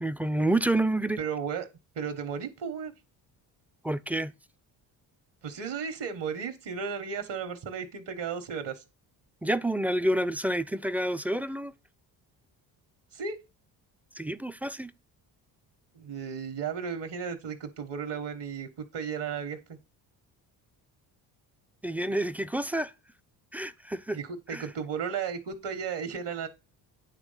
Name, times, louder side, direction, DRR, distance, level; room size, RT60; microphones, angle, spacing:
voice 1, 0.0-1.2 3.8-4.3 9.4-11.7 14.1-14.9 21.8-22.9 23.5-24.2 24.5-24.7, right 1 dB, 5° right, 0.4 m, -28 dB
voice 2, 1.2-1.7 1.9-2.9 5.4-8.8 13.1-13.4 15.9-19.6 24.1-26.5, right 6 dB, 60° right, 1.5 m, -34 dB
9.2 x 3.3 x 5.7 m
supercardioid pair, 60°, 48 cm